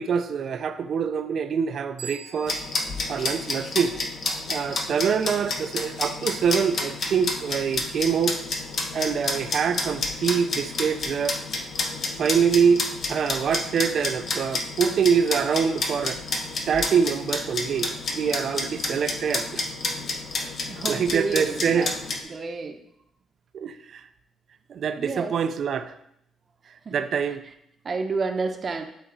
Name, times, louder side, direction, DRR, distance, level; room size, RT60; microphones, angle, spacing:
voice 1, 0.0-2.6 3.1-3.9 4.5-8.4 8.9-11.4 12.2-12.8 13.1-16.2 16.7-19.6 20.4-20.5 20.9-21.9 23.5-24.0 24.7-25.9 26.9-27.4, right 7 dB, 60° right, 10 dB, 0.6 m, -25 dB
sound 1, 2.0-4.5, right 5 dB, 80° right, 1.0 m, -45 dB
sound 2, 2.4-22.2, left 3 dB, 55° left, 1.2 m, -30 dB
voice 2, 20.7-22.0 22.2-22.8 25.0-25.4 26.8-27.4 27.8-28.9, right 4 dB, 40° right, 5 dB, 1.0 m, -30 dB
11.5 x 4.2 x 4.1 m, 0.74 s
cardioid pair, 90°, 0 cm